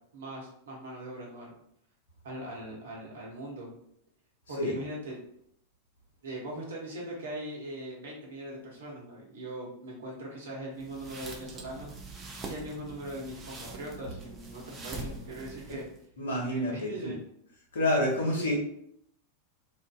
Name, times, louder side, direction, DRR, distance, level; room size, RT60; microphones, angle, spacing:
voice 1, 0.1-1.5 2.2-3.7 4.5-5.2 6.2-11.9 12.5-15.9 16.5-17.2 18.2-18.5, right 1 dB, 65° right, -2 dB, 0.8 m, -40 dB
sound 1, 10.8-16.0, right 2 dB, 25° right, 0.5 m, -43 dB
voice 2, 16.2-17.1 17.7-18.6, left 1 dB, 65° left, -1 dB, 0.8 m, -28 dB
2.5 x 2.4 x 2.3 m, 0.70 s
figure-of-eight pair, 90°, 0 cm